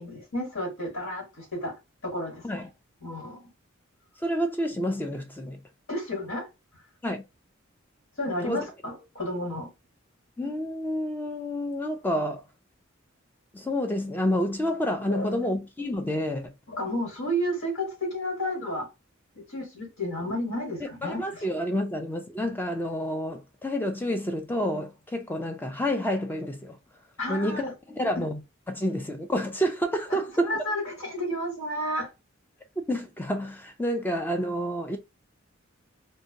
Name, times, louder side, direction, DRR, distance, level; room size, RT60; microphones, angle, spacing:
voice 1, 0.0-1.7 2.0-2.7 3.0-3.4 5.9-6.5 8.2-9.7 15.1-15.3 16.7-18.9 19.4-21.5 27.2-27.7 30.1-32.1, equal, 80° left, 1.3 m, -32 dB
voice 2, 4.2-5.6 7.0-7.2 8.4-8.6 10.4-12.4 13.5-16.5 21.0-26.8 27.3-28.4 28.7-30.6 32.9-35.0, equal, 10° left, 0.3 m, -29 dB
2.7 x 2.1 x 2.6 m
head